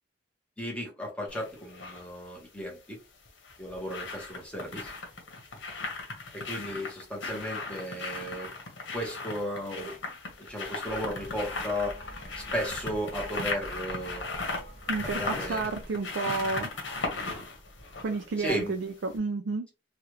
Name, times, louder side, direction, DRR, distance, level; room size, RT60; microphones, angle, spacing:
voice 1, 0.6-3.0 3.6-4.9 6.3-8.5 8.9-10.0 10.4-12.0 12.4-14.3 15.0-15.7 18.4-18.8, equal, 5° left, 1.0 m, -35 dB
sound 1, 1.3-2.0 3.3-18.8 19.1-19.2, left 3 dB, 80° left, 1.1 m, -37 dB
sound 2, 10.8-15.9, equal, 35° left, 0.8 m, -46 dB
voice 2, 14.9-16.7 18.0-19.7, right 3 dB, 70° right, 0.4 m, -31 dB
3.2 x 2.4 x 3.0 m
head